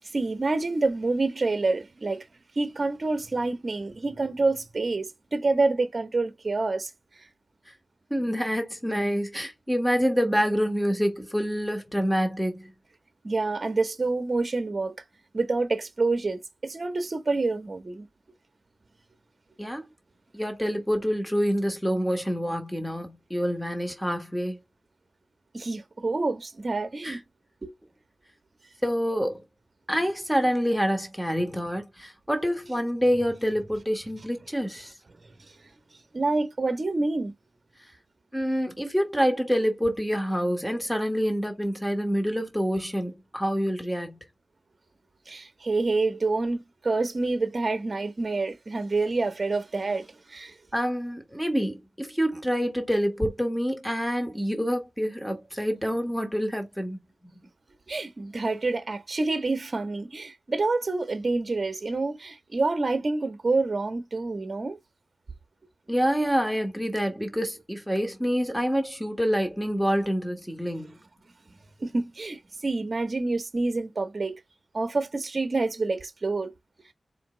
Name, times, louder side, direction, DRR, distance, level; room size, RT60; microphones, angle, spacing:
voice 1, 0.1-2.2 2.6-6.9 13.2-15.0 15.3-18.1 25.5-27.2 27.6-27.7 36.1-37.3 45.3-50.5 57.9-64.8 71.8-74.4 74.7-76.5, right 3 dB, 45° right, 0.9 m, -27 dB
voice 2, 8.1-12.7 19.6-19.8 20.3-24.6 27.0-27.2 28.8-29.4 29.9-34.9 38.3-44.2 50.7-57.0 65.9-70.9, equal, 5° left, 1.4 m, -27 dB
4.3 x 2.6 x 3.0 m
wide cardioid pair, 95°, 0 cm